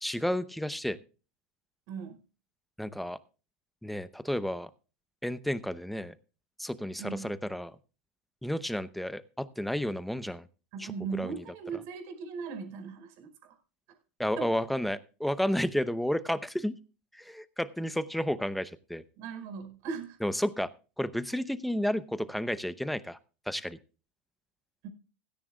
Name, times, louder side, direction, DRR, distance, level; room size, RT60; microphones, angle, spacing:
voice 1, 0.0-1.0 2.8-3.2 3.8-4.7 5.2-6.2 6.6-7.7 8.4-10.5 10.8-11.3 14.2-16.8 17.1-19.0 20.2-20.7 21.0-23.2 23.5-23.8, equal, ahead, 0.8 m, -31 dB
voice 2, 7.0-7.3 10.7-13.5 14.4-14.5 19.2-20.2 24.8-24.9, right 6 dB, 55° right, 5.1 m, -38 dB
16.5 x 13.5 x 2.3 m
hypercardioid pair, 110°, 6 cm